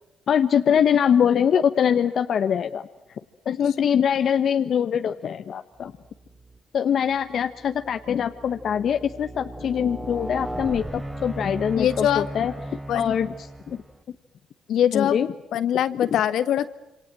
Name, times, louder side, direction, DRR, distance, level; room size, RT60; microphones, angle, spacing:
voice 1, 0.3-3.2 3.4-5.9 6.7-12.5 12.9-13.3 13.7-13.8 14.9-15.3 16.1-16.2, left 8 dB, 60° left, 9 dB, 1.2 m, -23 dB
sound 1, 6.2-6.6 7.2-14.0, right 1 dB, 15° right, 3.3 m, -36 dB
voice 2, 11.8-12.3 12.9-13.1 14.7-15.2 15.5-16.7, left 10 dB, 75° left, 11 dB, 1.7 m, -22 dB
27.5 x 26.0 x 7.6 m, 0.89 s
cardioid pair, 90°, 0 cm